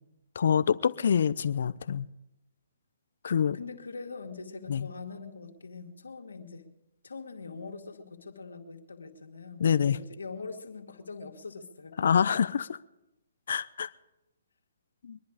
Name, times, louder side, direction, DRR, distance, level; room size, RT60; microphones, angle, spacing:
voice 1, 0.3-2.1 3.2-3.6 4.7-4.9 9.6-10.0 12.0-12.8 13.5-13.9 15.0-15.2, left 7 dB, 65° left, 0.6 m, -26 dB
voice 2, 3.5-6.7 7.0-11.9, left 4 dB, 85° left, 2.3 m, -43 dB
23.5 x 10.5 x 5.0 m
hypercardioid pair, 140°, 0 cm